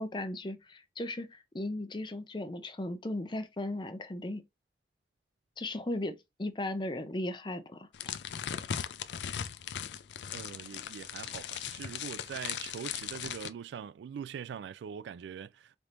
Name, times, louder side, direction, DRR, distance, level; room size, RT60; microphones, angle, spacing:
voice 1, 0.0-4.4 5.6-7.9, left 1 dB, 25° left, 0.5 m, -36 dB
sound 1, 7.9-13.5, left 9 dB, 85° left, 0.4 m, -38 dB
voice 2, 10.3-15.8, right 7 dB, 85° right, 0.3 m, -42 dB
4.2 x 3.4 x 2.5 m
head